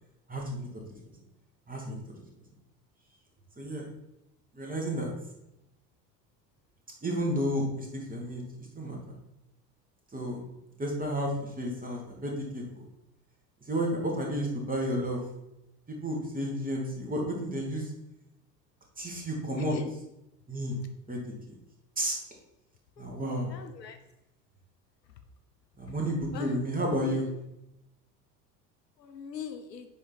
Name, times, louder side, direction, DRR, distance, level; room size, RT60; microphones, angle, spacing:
voice 1, 0.3-0.6 0.9-1.0 1.7-2.0 3.6-3.9 4.5-5.1 7.0-8.4 8.8-9.2 10.1-10.4 10.8-12.6 13.7-15.2 15.9-17.9 19.0-19.8 20.5-20.8 21.1-21.2 22.0-22.2 23.0-23.6 25.8-27.3, equal, 15° right, -1 dB, 2.2 m, -31 dB
voice 2, 23.5-24.0 26.3-26.6 27.0-27.2 29.1-29.9, left 7 dB, 75° left, 6 dB, 0.8 m, -40 dB
9.7 x 3.8 x 4.2 m, 0.88 s
figure-of-eight pair, 65°, 50 cm